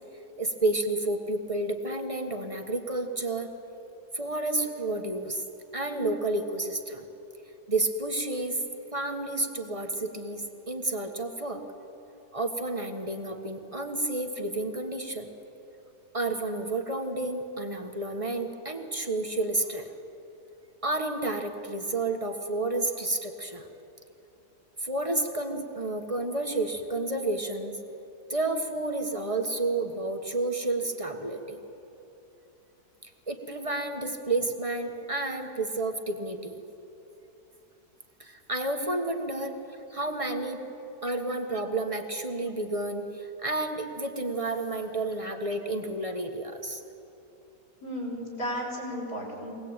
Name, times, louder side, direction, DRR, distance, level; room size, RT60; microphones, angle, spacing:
voice 1, 0.4-3.5 4.1-5.4 5.7-7.0 7.7-8.6 8.9-11.6 12.3-15.3 16.1-19.9 20.8-23.7 24.8-27.7 28.3-31.6 33.0-36.6 38.2-39.6 39.9-40.6 41.0-46.8, right 2 dB, 20° right, 4 dB, 1.4 m, -30 dB
voice 2, 47.8-49.6, equal, 65° left, -3 dB, 6.4 m, -34 dB
24.0 x 18.5 x 8.9 m, 3.0 s
omnidirectional pair, 1.7 m